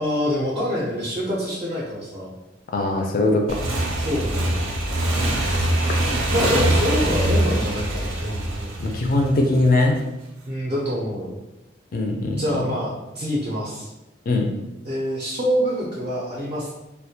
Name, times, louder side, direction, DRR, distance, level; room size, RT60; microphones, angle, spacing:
voice 1, 0.0-2.3 4.0-4.6 6.3-8.7 10.5-11.4 12.4-13.9 14.8-16.8, equal, 30° right, -5 dB, 0.4 m, -26 dB
voice 2, 2.7-3.7 8.8-10.0 11.9-12.6 14.3-14.5, left 2 dB, 45° left, 2 dB, 0.3 m, -21 dB
Motorcycle / Engine, 3.5-9.8, right 1 dB, 85° right, 0.5 m, -23 dB
2.2 x 2.1 x 2.7 m, 0.97 s
head